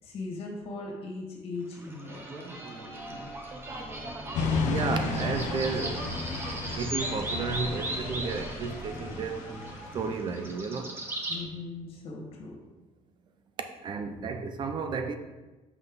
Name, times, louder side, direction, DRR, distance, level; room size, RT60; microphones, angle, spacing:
voice 1, 0.0-2.2 3.1-3.3 11.3-12.6 14.1-14.3, left 3 dB, 50° left, 1.9 m, -39 dB
sound 1, 1.7-11.4, right 1 dB, 20° right, 0.9 m, -37 dB
sound 2, 4.3-10.5, left 4 dB, 90° left, 0.8 m, -33 dB
voice 2, 4.6-6.2 6.7-9.5 9.9-10.9 13.8-15.2, right 5 dB, 40° right, 0.6 m, -33 dB
6.0 x 5.5 x 5.5 m
cardioid pair, 175°, 12 cm